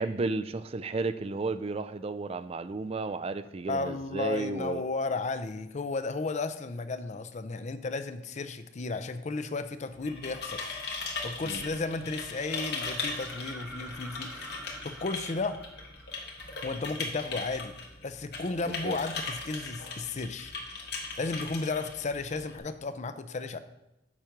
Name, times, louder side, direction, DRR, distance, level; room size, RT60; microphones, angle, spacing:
voice 1, 0.0-4.8 11.5-11.6 18.8-19.0, right 3 dB, 35° right, 12 dB, 0.4 m, -33 dB
voice 2, 3.7-10.9 11.2-15.7 16.6-17.8 18.0-20.5 21.2-23.6, left 3 dB, 40° left, 11 dB, 0.5 m, -34 dB
sound 1, 9.9-22.6, left 3 dB, 65° left, 1.6 m, -39 dB
sound 2, 13.1-16.8 18.7-18.8, right 1 dB, 10° right, 0.7 m, -48 dB
7.3 x 5.1 x 5.8 m, 0.91 s
head